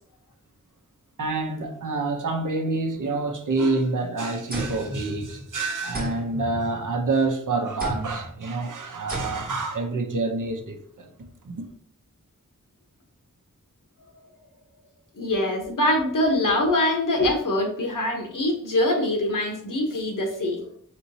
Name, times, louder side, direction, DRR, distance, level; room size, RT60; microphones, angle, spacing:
voice 1, 1.2-11.1 11.4-11.6, right 3 dB, 75° right, 0.7 m, -27 dB
sound 1, 4.5-5.6 5.9-7.2 7.8-8.3 9.1-9.7, right 1 dB, 30° right, 1.1 m, -34 dB
voice 2, 15.2-20.6, left 1 dB, 80° left, 0.9 m, -24 dB
4.3 x 3.1 x 2.7 m
wide cardioid pair, 65°, 32 cm